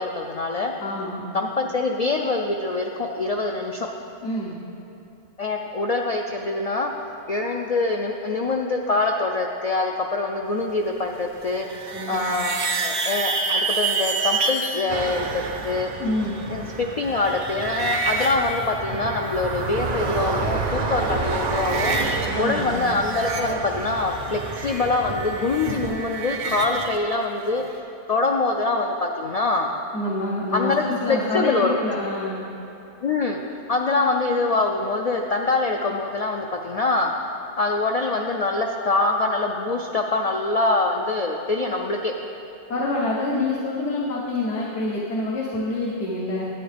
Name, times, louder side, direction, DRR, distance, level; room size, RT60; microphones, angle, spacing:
voice 1, 0.0-0.7 1.3-3.9 5.4-6.9 7.3-15.9 16.5-22.0 22.4-27.6 28.1-29.7 30.5-31.8 33.0-33.4 33.7-37.1 37.6-42.1, left 3 dB, 65° left, 1 dB, 0.3 m, -24 dB
voice 2, 0.8-1.2 4.2-4.5 11.9-12.4 16.0-16.4 22.3-22.8 29.9-32.4 42.7-46.5, left 2 dB, 80° left, -5 dB, 1.3 m, -27 dB
sound 1, 11.4-14.8 16.2-19.6 19.8-20.7 21.0-22.3 22.6-27.0, right 4 dB, 65° right, 0.9 m, -29 dB
sound 2, 14.9-26.0, right 4 dB, 50° right, 0.5 m, -30 dB
11.0 x 8.8 x 3.3 m, 2.9 s
omnidirectional pair, 1.2 m